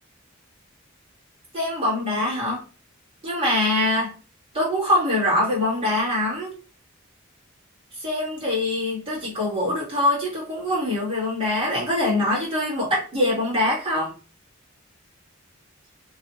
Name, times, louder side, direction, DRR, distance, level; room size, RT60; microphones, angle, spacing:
voice 1, 1.5-2.6 3.2-4.2 4.5-6.5 8.0-14.1, left 1 dB, 25° right, -6 dB, 1.8 m, -23 dB
3.1 x 2.6 x 3.0 m, 0.35 s
head